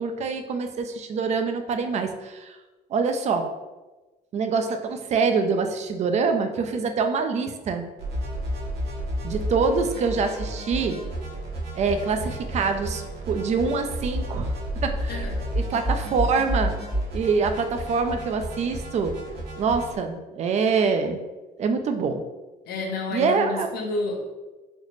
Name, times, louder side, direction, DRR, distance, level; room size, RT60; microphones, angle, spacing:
voice 1, 0.0-2.6 2.9-3.5 4.3-7.8 9.2-11.0 11.7-14.5 14.8-15.3 15.5-16.8 17.1-19.2 19.6-21.2 21.6-22.2 23.1-23.7, right 5 dB, 40° right, 7 dB, 0.4 m, -25 dB
sound 1, 8.0-20.0, right 1 dB, 75° right, 1.1 m, -31 dB
voice 2, 15.1-15.5 22.7-24.2, left 3 dB, 65° left, 0 dB, 0.7 m, -30 dB
4.1 x 2.0 x 3.0 m, 1.2 s
cardioid pair, 110°, 17 cm